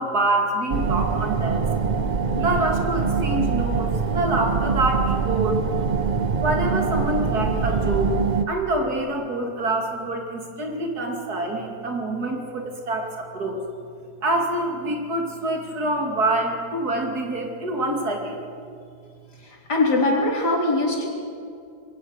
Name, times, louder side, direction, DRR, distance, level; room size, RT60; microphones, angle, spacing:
voice 1, 0.0-1.7 2.4-5.6 6.4-8.2 8.5-13.6 14.2-18.4, right 2 dB, 65° right, 2 dB, 2.9 m, -26 dB
sound 1, 0.7-8.4, right 5 dB, 45° right, 0.5 m, -24 dB
voice 2, 19.4-21.1, left 2 dB, 70° left, -2 dB, 4.3 m, -22 dB
22.5 x 18.0 x 6.5 m, 2.4 s
omnidirectional pair, 1.8 m